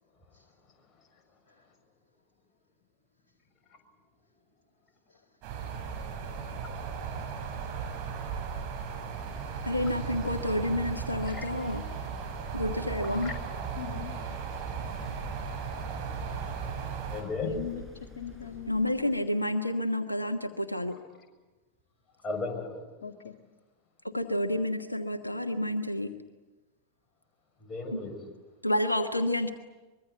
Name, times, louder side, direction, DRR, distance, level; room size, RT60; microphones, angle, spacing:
sound 1, 5.4-17.2, right 6 dB, 40° right, 7.2 m, -36 dB
sound 2, 8.6-19.4, equal, 5° right, 5.4 m, -49 dB
voice 1, 9.6-11.8 12.5-13.3 18.7-21.0 24.0-26.1 27.9-28.0 28.6-29.5, left 1 dB, 85° left, 8 dB, 1.3 m, -29 dB
voice 2, 13.8-14.1 17.4-18.8 23.0-23.3, left 10 dB, 60° left, 1 dB, 1.9 m, -41 dB
voice 3, 17.1-17.6 22.2-22.8 27.6-28.2, left 3 dB, 20° left, 2 dB, 6.8 m, -34 dB
24.5 x 23.0 x 9.5 m, 1.2 s
figure-of-eight pair, 90°, 0 cm